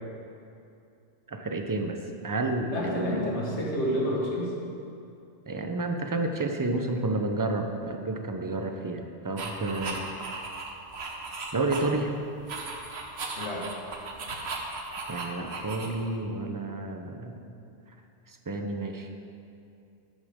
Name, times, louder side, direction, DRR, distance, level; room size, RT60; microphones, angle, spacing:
voice 1, 1.3-3.3 5.5-10.0 11.5-12.1 15.1-17.4 18.3-19.1, right 2 dB, 25° right, 4 dB, 0.5 m, -30 dB
voice 2, 2.7-4.5 13.4-13.7, equal, 85° left, -3 dB, 1.9 m, -29 dB
sound 1, 9.4-12.1 12.4-16.2, right 3 dB, 70° right, 1.2 m, -36 dB
12.0 x 8.1 x 3.7 m, 2.6 s
omnidirectional pair, 1.1 m